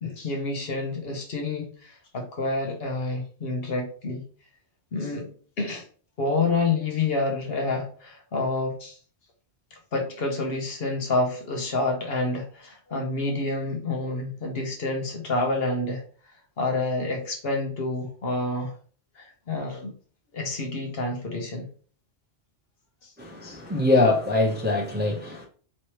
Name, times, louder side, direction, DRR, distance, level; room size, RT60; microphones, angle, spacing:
voice 1, 0.0-4.2 4.9-5.3 5.6-5.8 6.2-9.0 9.7-16.0 16.6-18.7 19.2-19.9 20.3-21.6 23.0-23.1, left 3 dB, 60° left, 1.0 m, -28 dB
voice 2, 23.2-25.5, left 2 dB, 10° right, 0.6 m, -23 dB
3.2 x 3.0 x 2.9 m
omnidirectional pair, 1.1 m